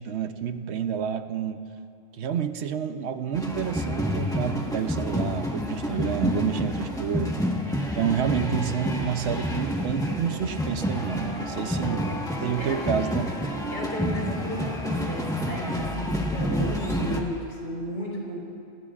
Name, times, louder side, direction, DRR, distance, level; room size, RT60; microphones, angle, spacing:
voice 1, 0.0-1.6 2.2-7.4 8.0-12.1 12.4-13.3, right 8 dB, 75° right, 9 dB, 1.0 m, -29 dB
sound 1, 3.3-17.2, equal, 5° left, 1.3 m, -29 dB
Wind instrument woodwind instrument, 9.6-16.4, left 1 dB, 45° left, 1.3 m, -41 dB
voice 2, 12.6-12.9 13.7-18.4, left 1 dB, 85° left, -4 dB, 4.8 m, -33 dB
27.5 x 20.5 x 2.5 m, 2.6 s
omnidirectional pair, 1.1 m